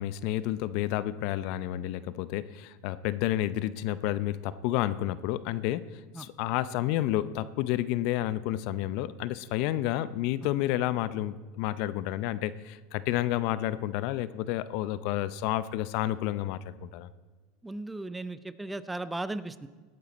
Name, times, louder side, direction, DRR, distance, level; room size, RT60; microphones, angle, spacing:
voice 1, 0.0-5.9 6.2-17.1, left 14 dB, 60° left, 16 dB, 0.5 m, -30 dB
voice 2, 17.6-19.7, right 2 dB, 10° right, 14 dB, 0.5 m, -36 dB
17.5 x 9.4 x 4.1 m, 1.5 s
supercardioid pair, 130°, 0 cm